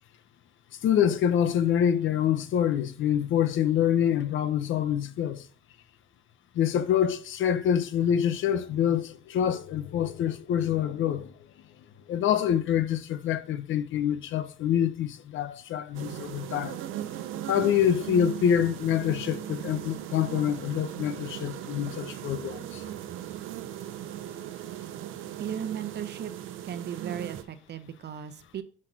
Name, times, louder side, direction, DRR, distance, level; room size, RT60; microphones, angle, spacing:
voice 1, 0.8-5.5 6.5-11.3 12.1-16.8 17.5-22.8, left 9 dB, 75° left, 0.8 m, -26 dB
sound 1, 15.9-27.4, right 12 dB, 85° right, 0.6 m, -38 dB
voice 2, 25.4-26.3 26.6-28.6, right 9 dB, 60° right, 0.8 m, -36 dB
6.5 x 5.8 x 3.8 m
cardioid pair, 90°, 20 cm